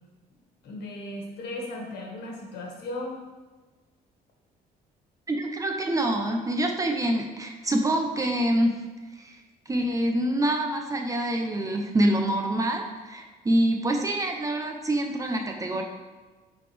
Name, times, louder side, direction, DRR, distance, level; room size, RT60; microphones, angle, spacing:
voice 1, 0.6-3.2, left 1 dB, 75° left, -1 dB, 1.9 m, -36 dB
voice 2, 5.3-8.8 9.2-9.4 9.7-15.8, right 1 dB, 20° right, 3 dB, 0.8 m, -26 dB
9.7 x 4.1 x 3.4 m, 1.3 s
cardioid pair, 110°, 17 cm